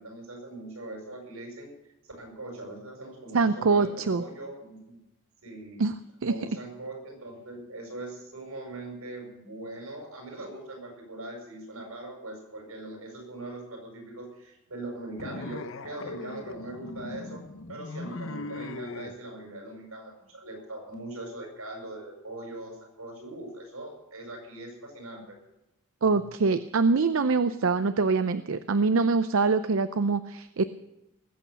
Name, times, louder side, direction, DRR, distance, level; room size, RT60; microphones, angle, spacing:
voice 1, 0.0-1.7 2.0-5.0 5.4-5.8 6.3-17.4 17.7-25.4, right 2 dB, 90° right, 1 dB, 7.1 m, -41 dB
voice 2, 3.3-4.2 5.8-5.9 6.2-6.3 26.0-30.6, right 4 dB, 70° right, 12 dB, 0.5 m, -24 dB
sound 1, 15.2-19.2, left 3 dB, 65° left, 0.8 m, -39 dB
19.5 x 8.5 x 6.8 m, 0.91 s
head